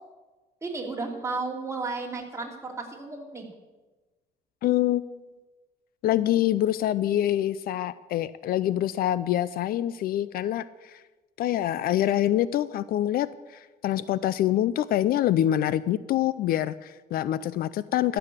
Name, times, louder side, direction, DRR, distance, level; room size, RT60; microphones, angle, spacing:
voice 1, 0.6-3.5, right 3 dB, 15° right, 0 dB, 2.7 m, -33 dB
voice 2, 4.6-5.2 6.0-11.0 11.4-18.2, left 12 dB, 60° left, 17 dB, 0.4 m, -25 dB
13.5 x 6.9 x 8.2 m, 1.2 s
cardioid pair, 110°, 17 cm